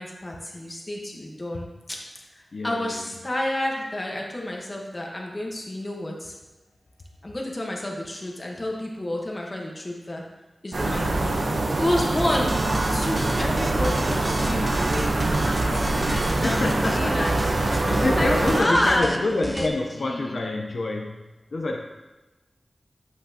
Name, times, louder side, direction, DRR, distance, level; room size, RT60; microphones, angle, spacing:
voice 1, 0.0-2.0 2.3-6.3 7.2-10.2 10.6-11.5 11.8-12.6 12.9-17.3 17.9-19.1 19.3-19.7 20.0-20.4, left 1 dB, 30° left, -1 dB, 1.1 m, -30 dB
voice 2, 2.5-3.1 15.7-17.2 17.6-21.2 21.5-21.8, left 2 dB, 65° left, 1 dB, 0.6 m, -28 dB
sound 1, 10.7-18.6, right 2 dB, 65° right, 0.8 m, -24 dB
sound 2, 12.2-19.7, right 1 dB, 25° right, 0.6 m, -33 dB
7.8 x 5.7 x 2.8 m, 1.1 s
wide cardioid pair, 110°, 0 cm